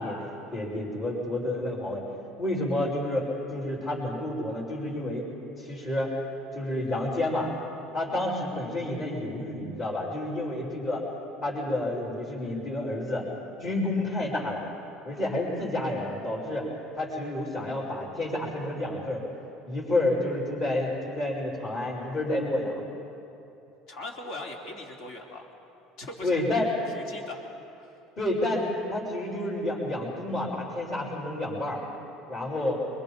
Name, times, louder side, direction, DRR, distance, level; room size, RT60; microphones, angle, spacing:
voice 1, 0.0-2.0 2.4-5.3 5.6-6.1 6.5-7.5 7.9-11.0 11.4-13.3 13.6-14.6 15.0-16.7 16.9-19.2 19.7-22.8 26.2-26.7 28.2-31.8 32.3-32.8, left 1 dB, 45° left, -10 dB, 5.5 m, -29 dB
voice 2, 23.9-25.5 26.0-26.4 26.9-27.4 27.7-27.9, left 2 dB, 65° left, 1 dB, 3.2 m, -40 dB
24.0 x 22.5 x 5.5 m, 2.8 s
supercardioid pair, 105°, 0 cm